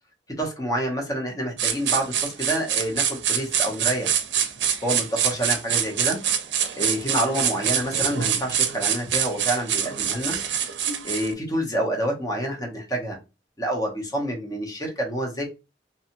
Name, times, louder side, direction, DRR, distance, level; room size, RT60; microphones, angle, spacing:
voice 1, 0.4-4.2 4.8-6.2 6.8-10.4 11.0-13.2 13.6-15.5, right 1 dB, 20° left, 1 dB, 0.8 m, -28 dB
sound 1, 1.6-11.3, right 9 dB, 85° right, 0.5 m, -25 dB
2.7 x 2.3 x 2.8 m, 0.27 s
head